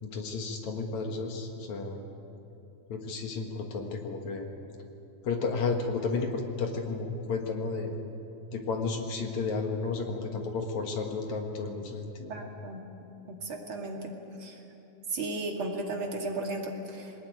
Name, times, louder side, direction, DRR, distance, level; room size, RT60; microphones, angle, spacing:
voice 1, 0.0-2.0 2.9-4.5 5.2-8.0 8.5-12.4, left 4 dB, 55° left, 3 dB, 2.5 m, -32 dB
voice 2, 12.3-12.8 13.3-14.6 15.1-17.1, right 2 dB, 40° right, 1 dB, 2.6 m, -35 dB
21.0 x 19.5 x 9.3 m, 2.9 s
omnidirectional pair, 4.4 m